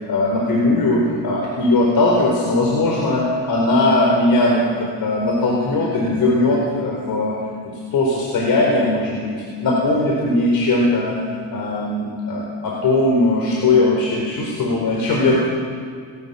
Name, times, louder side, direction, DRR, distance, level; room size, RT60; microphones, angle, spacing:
voice 1, 0.0-7.4 7.9-9.4 9.6-11.2 11.5-15.4, left 2 dB, 55° left, -1 dB, 4.7 m, -19 dB
21.5 x 18.5 x 7.0 m, 2.2 s
cardioid pair, 105°, 42 cm